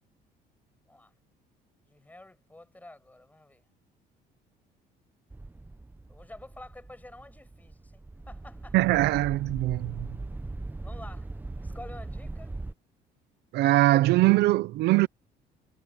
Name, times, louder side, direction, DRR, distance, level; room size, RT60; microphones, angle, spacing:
voice 1, 1.9-3.6 6.1-8.8 10.8-11.3 11.6-12.5, left 1 dB, 10° left, 6.5 m, -49 dB
sound 1, 5.3-12.7, right 2 dB, 10° right, 1.0 m, -40 dB
voice 2, 8.7-10.1 13.5-15.1, right 17 dB, 80° right, 0.6 m, -22 dB
cardioid pair, 110°, 17 cm